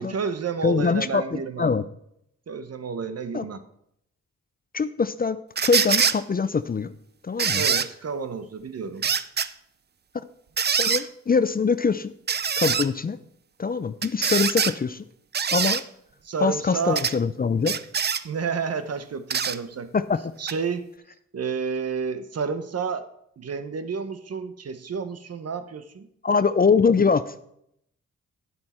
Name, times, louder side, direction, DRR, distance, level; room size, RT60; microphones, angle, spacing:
voice 1, 0.0-1.8 2.5-3.6 7.6-9.1 16.2-17.0 18.2-19.9 20.4-20.8 21.3-23.1 23.4-26.1, right 6 dB, 55° right, 11 dB, 0.9 m, -30 dB
voice 2, 0.6-1.8 3.3-3.4 4.7-5.4 5.6-6.9 7.2-7.6 10.8-12.1 12.6-13.2 13.6-15.0 15.5-15.8 16.4-17.7 19.9-20.2 26.2-27.4, left 5 dB, 30° left, 14 dB, 0.5 m, -23 dB
sound 1, 5.6-6.2 7.4-7.9 9.0-9.5 10.6-11.0 12.3-12.9 14.0-14.7 15.3-15.8 17.0-17.2 17.6-18.2 19.3-19.6 20.5-20.6, right 7 dB, 35° right, 0.5 m, -23 dB
9.6 x 7.7 x 4.3 m, 0.74 s
cardioid pair, 55°, 31 cm